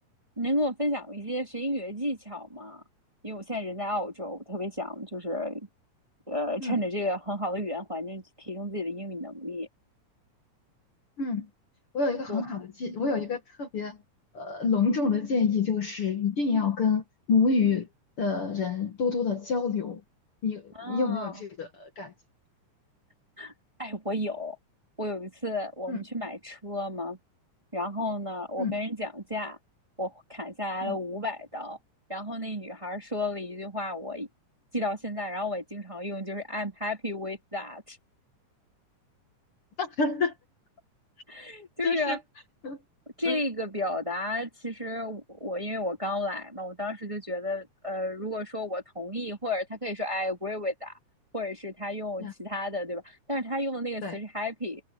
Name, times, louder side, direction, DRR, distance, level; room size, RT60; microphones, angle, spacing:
voice 1, 0.4-2.8 3.2-5.7 6.3-9.7 12.3-12.4 20.7-21.4 23.4-23.5 23.8-24.6 25.0-27.2 27.7-29.6 30.0-31.8 32.1-34.3 34.7-38.0 41.3-42.2 43.2-50.9 51.3-54.8, left 1 dB, 10° right, 2.8 m, -32 dB
voice 2, 11.9-14.0 14.3-17.9 18.2-20.0 20.4-22.1 25.9-26.0 28.6-28.8 30.8-31.0 39.8-40.3 41.8-42.2 42.6-42.8 43.3-43.4 52.2-52.3 54.0-54.2, left 4 dB, 45° left, 2.5 m, -27 dB
omnidirectional pair, 3.6 m